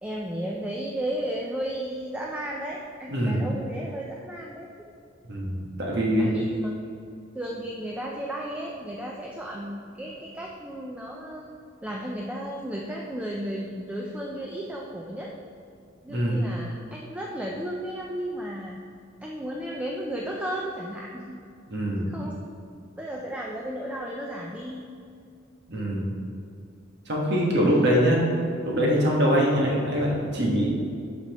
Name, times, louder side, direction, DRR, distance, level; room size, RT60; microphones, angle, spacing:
voice 1, 0.0-4.7 6.2-6.7 7.3-11.5 11.8-15.3 16.0-18.8 19.2-21.4 22.0-22.4 23.0-24.9, right 1 dB, 5° right, -2 dB, 0.4 m, -34 dB
voice 2, 3.1-3.4 5.3-6.3 16.1-16.5 21.7-22.1 25.7-26.1 27.1-28.2 28.6-30.7, equal, 60° right, -3 dB, 1.4 m, -23 dB
11.5 x 4.2 x 3.0 m, 2.4 s
head